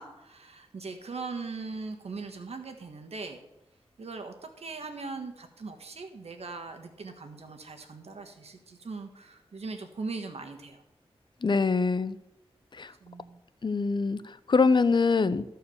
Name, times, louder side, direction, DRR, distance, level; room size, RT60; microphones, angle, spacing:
voice 1, 0.0-3.4 4.0-10.8 13.0-13.4, right 4 dB, 80° right, 5 dB, 1.5 m, -40 dB
voice 2, 11.4-12.2 12.8-12.9 13.6-14.2 14.5-15.4, left 4 dB, 50° left, 15 dB, 0.6 m, -24 dB
14.0 x 4.6 x 7.0 m, 0.90 s
wide cardioid pair, 70°, 11 cm